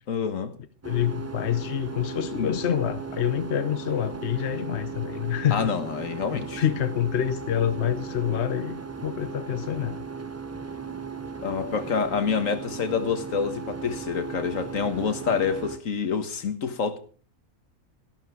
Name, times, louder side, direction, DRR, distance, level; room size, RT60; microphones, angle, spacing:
voice 1, 0.1-0.5 5.5-6.6 11.4-17.0, left 6 dB, 75° left, 1.7 m, -27 dB
voice 2, 0.8-5.7 6.3-10.0, left 10 dB, 60° left, 1.1 m, -27 dB
sound 1, 0.8-15.8, right 5 dB, 20° right, 0.4 m, -37 dB
14.0 x 12.0 x 4.6 m
omnidirectional pair, 1.4 m